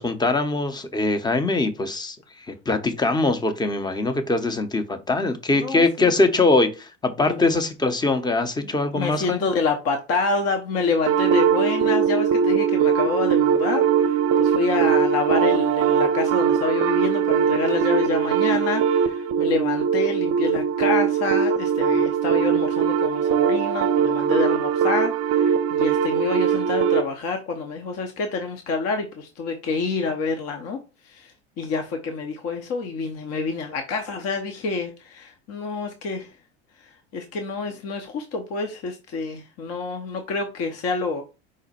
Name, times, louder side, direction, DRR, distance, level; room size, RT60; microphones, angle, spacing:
voice 1, 0.0-2.2 2.5-9.5, left 3 dB, 15° left, 0.7 m, -22 dB
voice 2, 5.5-6.1 7.2-7.5 8.6-30.8 31.0-36.3 36.8-41.2, left 4 dB, 50° left, 0.8 m, -28 dB
sound 1, 11.1-27.1, right 7 dB, 45° right, 0.5 m, -21 dB
5.0 x 2.1 x 4.2 m
hypercardioid pair, 85°, 33 cm